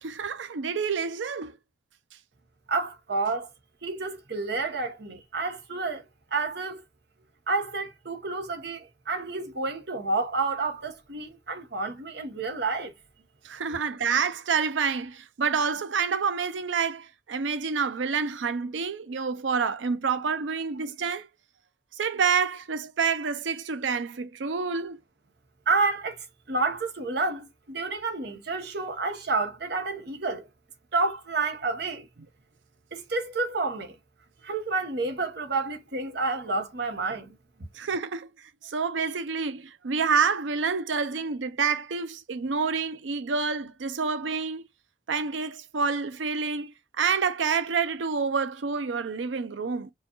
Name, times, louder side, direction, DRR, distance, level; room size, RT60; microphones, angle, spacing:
voice 1, 0.0-1.6 13.4-21.3 22.0-25.0 37.7-38.3 38.6-44.6 45.1-49.9, right 5 dB, 90° right, 0.6 m, -28 dB
voice 2, 2.7-3.5 3.8-6.0 6.3-6.8 7.5-12.9 13.6-13.8 25.7-30.5 30.9-32.0 32.9-34.0 34.4-37.3, right 3 dB, 60° right, 1.1 m, -29 dB
4.8 x 2.3 x 3.0 m
head